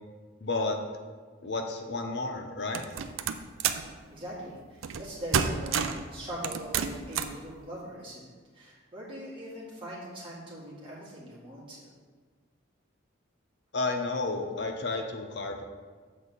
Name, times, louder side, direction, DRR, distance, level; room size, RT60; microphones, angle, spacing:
voice 1, 0.4-0.8 1.4-2.8 13.7-15.6, left 3 dB, 55° left, 4 dB, 0.8 m, -31 dB
sound 1, 2.7-3.9 4.8-5.1 5.3-6.1 6.4-7.4, right 7 dB, 85° right, 0.5 m, -29 dB
voice 2, 4.1-11.9, equal, 25° right, -6 dB, 2.1 m, -42 dB
7.1 x 4.1 x 6.4 m, 1.5 s
head